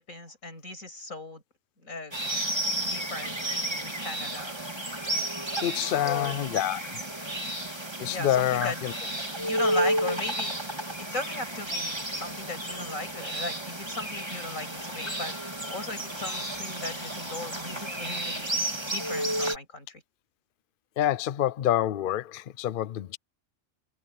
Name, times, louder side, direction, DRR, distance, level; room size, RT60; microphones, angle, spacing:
voice 1, 0.0-1.4 1.8-2.2 2.8-4.6 6.0-6.4 8.0-8.8 9.1-10.7 11.0-18.5 18.9-20.0, left 2 dB, 90° left, 7.1 m, -37 dB
sound 1, 2.1-19.6, right 1 dB, 20° right, 3.2 m, -32 dB
voice 2, 5.6-7.0 8.0-8.9 21.0-23.2, left 12 dB, 60° left, 0.6 m, -27 dB
omnidirectional pair, 1.4 m